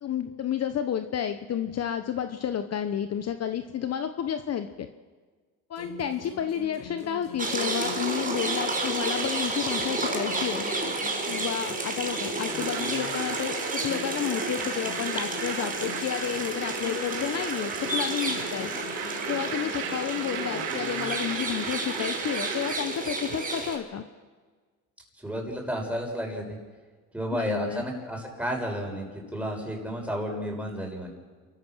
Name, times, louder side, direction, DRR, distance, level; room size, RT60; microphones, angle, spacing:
voice 1, 0.0-4.9 5.7-10.7 11.3-18.7 19.2-24.0 27.3-27.8, left 9 dB, 45° left, 9 dB, 1.1 m, -31 dB
sound 1, 5.8-9.5 9.8-13.4 13.8-17.5 17.8-21.4, left 6 dB, 75° left, 3.6 m, -42 dB
sound 2, 7.4-23.8, right 2 dB, 20° right, 5.7 m, -31 dB
sound 3, 12.5-22.8, right 7 dB, 80° right, 5.1 m, -36 dB
voice 2, 25.2-26.6 27.1-31.1, equal, 5° right, 0 dB, 6.4 m, -32 dB
29.5 x 14.0 x 6.3 m, 1.5 s
supercardioid pair, 90°, 36 cm